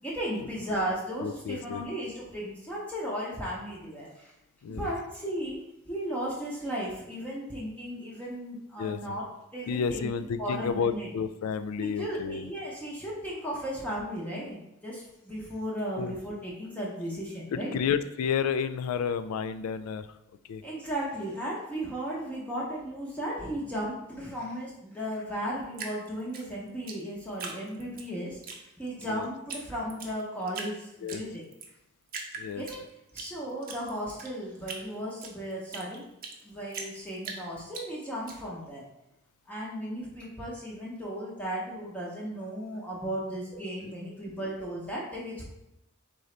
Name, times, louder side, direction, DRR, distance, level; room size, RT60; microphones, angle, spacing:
voice 1, 0.0-4.3 4.7-9.2 9.5-10.1 10.4-11.1 11.8-17.8 20.6-28.4 28.8-31.4 32.6-32.8 33.1-36.1 36.4-38.8 39.5-45.4, equal, 5° left, -6 dB, 0.7 m, -35 dB
voice 2, 1.2-1.8 4.6-4.9 8.8-9.2 9.7-12.5 16.0-16.2 17.5-20.1 20.5-20.6 29.0-29.3 31.0-31.2 32.4-32.6 43.8-43.9, left 6 dB, 85° left, 12 dB, 0.3 m, -31 dB
Drip, 25.7-28.1 28.4-29.1 29.5-29.6 29.9-30.7 31.1-31.7 32.1-33.3 33.6-36.4 36.7-38.3, right 4 dB, 40° right, 0.6 m, -40 dB
3.9 x 3.8 x 3.2 m, 0.87 s
head